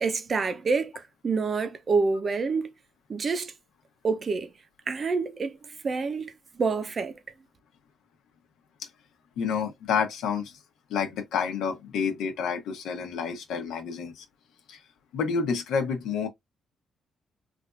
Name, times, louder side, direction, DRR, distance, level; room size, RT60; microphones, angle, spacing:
voice 1, 0.0-2.7 3.1-3.5 4.0-4.5 4.9-5.6 5.8-7.1, right 4 dB, 40° right, 0.6 m, -27 dB
voice 2, 9.4-10.5 10.9-14.2 14.7-14.8 15.1-16.3, left 6 dB, 85° left, 0.9 m, -29 dB
3.4 x 2.5 x 2.4 m
cardioid pair, 90°, 0 cm